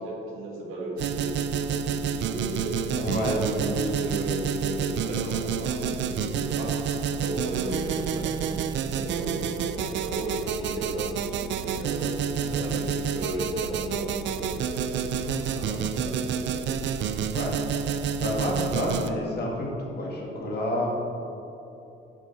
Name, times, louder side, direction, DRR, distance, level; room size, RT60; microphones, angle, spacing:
voice 1, 0.0-6.8 7.1-12.1 12.4-16.9, right 1 dB, 85° right, -1 dB, 1.7 m, -35 dB
sound 1, 1.0-19.1, right 7 dB, 65° right, 0.5 m, -29 dB
voice 2, 2.9-3.9 12.4-12.6 15.1-15.8 17.3-17.6 18.2-20.9, left 1 dB, 55° left, -2 dB, 2.0 m, -30 dB
8.3 x 5.1 x 5.6 m, 2.9 s
cardioid pair, 90°, 20 cm